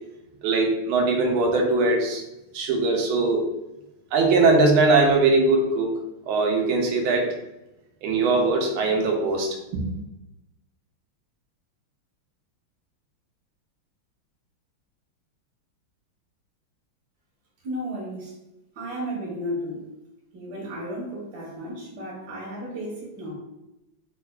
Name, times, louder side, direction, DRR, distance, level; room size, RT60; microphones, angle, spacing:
voice 1, 0.4-2.2 2.5-3.5 4.1-6.0 6.3-7.4 8.0-9.8, right 3 dB, 80° right, 1 dB, 1.5 m, -21 dB
voice 2, 17.6-18.3 18.7-19.8 20.3-23.3, equal, 60° right, -4 dB, 1.1 m, -33 dB
4.4 x 2.3 x 2.2 m, 0.94 s
omnidirectional pair, 2.3 m